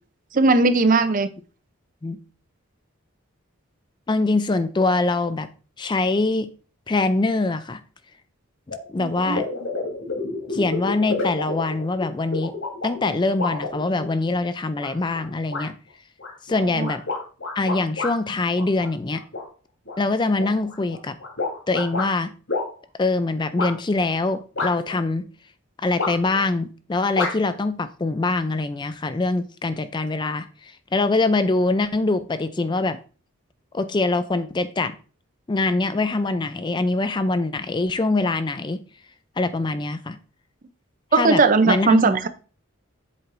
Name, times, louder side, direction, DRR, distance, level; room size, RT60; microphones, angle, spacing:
voice 1, 0.3-1.3 9.0-9.4 16.8-16.9 41.1-42.3, right 3 dB, 40° right, 0.5 m, -18 dB
voice 2, 4.1-5.5 5.8-6.5 6.9-7.8 8.7-9.5 10.5-12.5 12.8-15.8 16.4-17.0 17.6-19.2 20.0-21.2 21.7-22.3 23.0-25.3 25.8-33.0 33.7-35.0 35.5-38.8 39.4-40.2 41.1-42.1, left 3 dB, 20° left, 0.3 m, -23 dB
sound 1, 8.7-8.8 9.1-14.2 14.8-15.2 15.5-15.7 16.2-18.1 18.5-19.4 19.9-22.1 22.5-22.7 23.6-23.7 24.5-25.0 26.0-26.4 27.2-27.3, left 3 dB, 80° left, 3.4 m, -29 dB
7.8 x 7.4 x 2.6 m
head